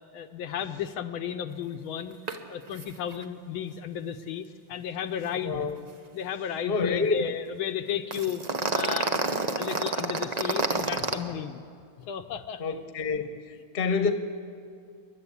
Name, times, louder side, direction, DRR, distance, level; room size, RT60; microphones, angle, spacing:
voice 1, 0.1-2.2 2.5-5.7 6.1-8.4 8.7-9.2 9.5-11.6 12.0-12.6, left 9 dB, 75° left, 8 dB, 1.5 m, -33 dB
sound 1, 2.3-2.4 2.7-2.8 3.1-3.2 8.1-11.1, right 3 dB, 65° right, 0.4 m, -28 dB
voice 2, 5.4-5.8 6.7-7.3 12.6-13.4 13.7-14.1, left 4 dB, 35° left, 8 dB, 1.1 m, -27 dB
28.5 x 12.0 x 8.4 m, 2.3 s
omnidirectional pair, 2.4 m